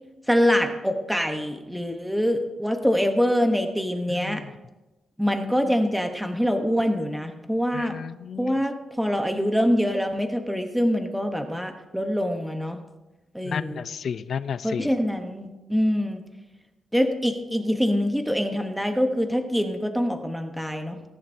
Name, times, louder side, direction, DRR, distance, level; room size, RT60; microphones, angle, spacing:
voice 1, 0.3-4.4 5.2-8.0 8.4-12.8 13.3-13.8 14.6-16.2 16.9-21.0, equal, ahead, 5 dB, 0.9 m, -24 dB
voice 2, 4.1-4.5 7.7-8.5 13.4-14.9, left 7 dB, 60° left, 15 dB, 0.5 m, -32 dB
18.5 x 10.5 x 2.7 m, 1.1 s
cardioid pair, 125°, 0 cm